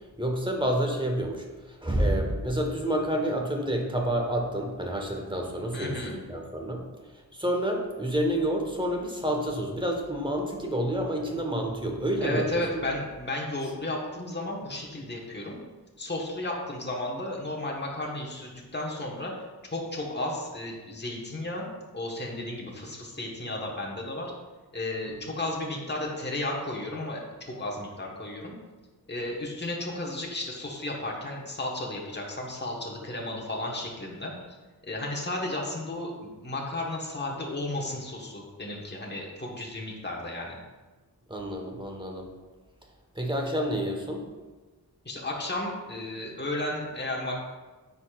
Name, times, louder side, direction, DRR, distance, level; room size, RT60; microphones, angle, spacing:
voice 1, 0.2-6.8 7.3-12.5 12.7-12.8 41.3-42.3 43.1-44.2, right 1 dB, 10° right, 2 dB, 1.2 m, -29 dB
voice 2, 5.7-6.2 12.2-15.6 16.0-19.3 19.7-21.7 21.9-24.3 24.7-28.5 29.1-34.6 34.8-40.6 45.0-47.4, left 1 dB, 25° left, -2 dB, 1.2 m, -33 dB
9.7 x 4.2 x 2.4 m, 1.3 s
wide cardioid pair, 40°, 40 cm